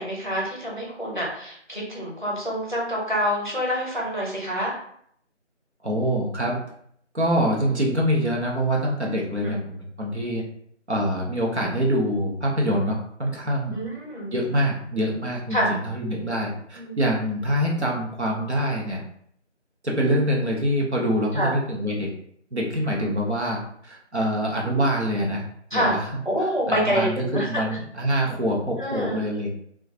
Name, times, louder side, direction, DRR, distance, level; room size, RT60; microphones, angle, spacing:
voice 1, 0.0-4.8 9.3-9.5 13.7-14.3 15.5-15.7 16.7-17.0 21.4-21.5 23.0-23.2 25.7-26.0 26.2-27.5 28.8-29.2, equal, 40° left, -3 dB, 0.6 m, -26 dB
voice 2, 5.8-6.6 7.1-10.4 10.9-13.8 14.3-19.0 19.8-22.1 22.5-25.4 25.7-26.2 26.7-29.6, equal, 65° right, -2 dB, 0.8 m, -25 dB
2.3 x 2.3 x 2.6 m, 0.66 s
figure-of-eight pair, 180°, 36 cm